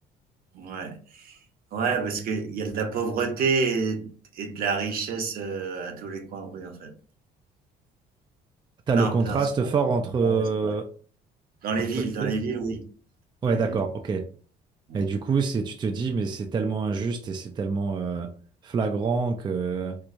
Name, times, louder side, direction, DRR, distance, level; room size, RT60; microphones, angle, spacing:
voice 1, 0.5-1.4 1.7-6.9 8.9-9.8 10.2-10.7 11.6-12.8 13.4-13.8 14.9-15.0, right 5 dB, 60° right, 0.9 m, -29 dB
voice 2, 8.9-10.9 12.2-12.3 13.4-14.3 14.9-18.3 18.6-20.0, right 4 dB, 25° right, 0.4 m, -26 dB
4.5 x 2.2 x 2.6 m
cardioid pair, 110°, 17 cm